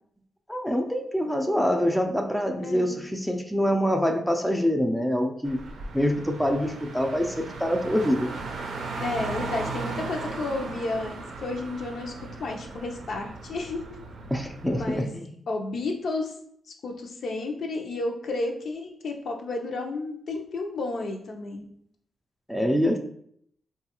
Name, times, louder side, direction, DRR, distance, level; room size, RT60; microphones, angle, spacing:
voice 1, 0.5-5.6 5.9-8.3 14.3-15.3 22.5-23.0, equal, ahead, 3 dB, 0.4 m, -25 dB
voice 2, 2.6-3.0 9.0-12.1 12.4-13.9 14.7-15.1 15.5-16.3 16.8-21.6, left 2 dB, 70° left, 2 dB, 0.5 m, -32 dB
Car, 5.4-15.0, right 3 dB, 85° right, 0.5 m, -37 dB
3.8 x 2.3 x 2.9 m, 0.66 s
cardioid pair, 85°, 0 cm